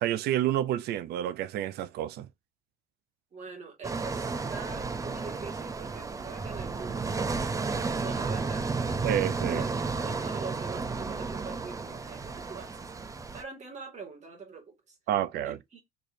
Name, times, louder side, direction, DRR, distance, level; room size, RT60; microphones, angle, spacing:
voice 1, 0.0-2.3 9.0-9.6 15.1-15.6, right 12 dB, 75° right, 0.5 m, -29 dB
voice 2, 3.3-15.0 15.4-15.8, right 4 dB, 45° right, 2.2 m, -44 dB
sound 1, 3.8-13.4, right 4 dB, 20° right, 0.5 m, -32 dB
4.3 x 3.2 x 2.6 m
cardioid pair, 110°, 17 cm